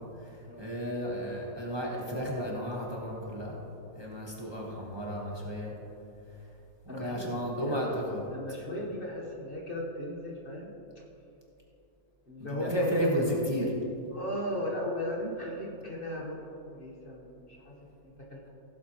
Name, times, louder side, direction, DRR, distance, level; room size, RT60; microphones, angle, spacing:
voice 1, 0.0-3.6 3.9-5.7 6.8-8.2 12.4-13.7, equal, 20° right, -3 dB, 1.2 m, -33 dB
voice 2, 6.9-8.0 8.3-10.7 12.3-12.9 14.1-18.5, left 1 dB, 40° left, -2 dB, 1.2 m, -37 dB
16.5 x 7.4 x 2.9 m, 2.8 s
omnidirectional pair, 1.6 m